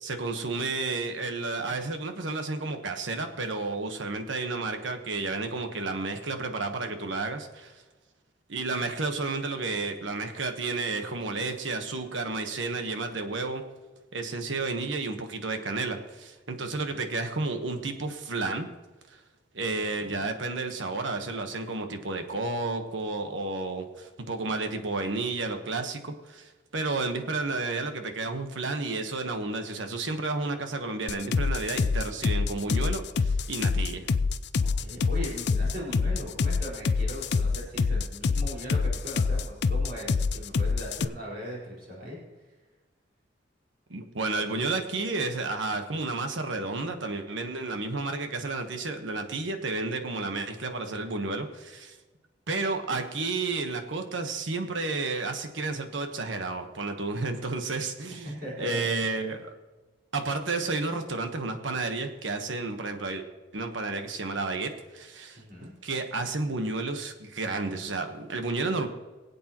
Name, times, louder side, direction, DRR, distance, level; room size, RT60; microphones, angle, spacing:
voice 1, 0.0-7.8 8.5-13.6 14.1-18.7 19.5-34.1 43.9-52.0 52.5-59.5 60.1-63.2 63.5-65.4 65.8-68.9, right 3 dB, 85° right, 6 dB, 1.3 m, -31 dB
voice 2, 16.6-16.9 20.0-20.2 34.6-42.2 58.1-58.8 65.4-65.7, equal, 50° right, -6 dB, 4.8 m, -39 dB
sound 1, 31.1-41.0, left 4 dB, 60° left, 0.4 m, -26 dB
23.5 x 8.4 x 3.0 m, 1.2 s
head